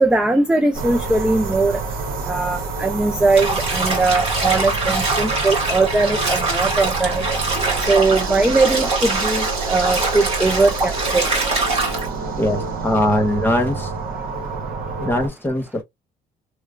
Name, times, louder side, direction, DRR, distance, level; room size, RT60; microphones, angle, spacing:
voice 1, 0.0-1.8 2.2-7.3 7.9-11.3, right 3 dB, 5° right, 0.3 m, -20 dB
sound 1, 0.7-15.3, right 4 dB, 60° right, 1.0 m, -28 dB
Bathtub (filling or washing), 3.3-12.1, right 3 dB, 35° right, 1.7 m, -23 dB
voice 2, 12.4-13.9 15.0-15.8, left 1 dB, 10° left, 1.1 m, -21 dB
3.1 x 2.1 x 2.4 m
cardioid pair, 110°, 17 cm